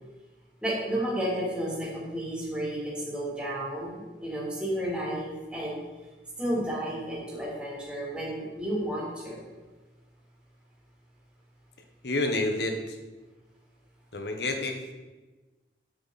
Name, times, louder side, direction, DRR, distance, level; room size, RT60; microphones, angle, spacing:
voice 1, 0.6-5.8 6.4-9.4, right 1 dB, 5° right, -6 dB, 3.0 m, -32 dB
voice 2, 12.0-13.0 14.1-14.9, left 2 dB, 70° left, 4 dB, 1.2 m, -29 dB
8.9 x 8.6 x 4.2 m, 1.2 s
head